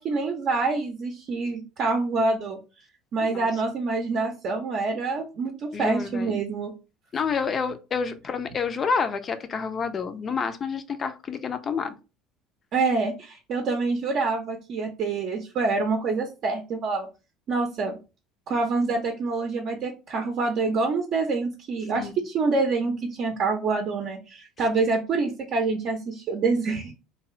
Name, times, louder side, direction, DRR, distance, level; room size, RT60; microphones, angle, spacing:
voice 1, 0.0-2.6 3.1-6.7 12.7-17.1 17.5-18.0 18.5-26.9, right 3 dB, 50° right, 0.6 m, -26 dB
voice 2, 5.7-6.4 7.1-11.9 21.9-22.1, left 5 dB, 35° left, 0.4 m, -29 dB
2.6 x 2.3 x 3.1 m
hypercardioid pair, 65°, 0 cm